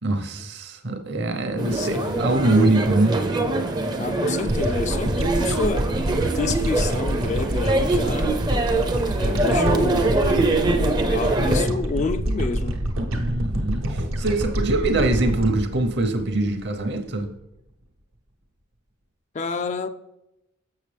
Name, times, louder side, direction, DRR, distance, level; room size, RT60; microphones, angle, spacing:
voice 1, 0.0-3.2 13.2-17.3, right 2 dB, 55° right, 0.8 m, -23 dB
voice 2, 1.6-2.1 4.0-8.4 9.2-10.2 10.7-12.9 19.3-19.9, left 4 dB, 35° left, 0.3 m, -29 dB
sound 1, 1.6-11.7, right 2 dB, 20° right, 0.5 m, -24 dB
sound 2, 4.5-16.9, right 1 dB, 75° right, 1.0 m, -26 dB
7.1 x 6.5 x 3.4 m
head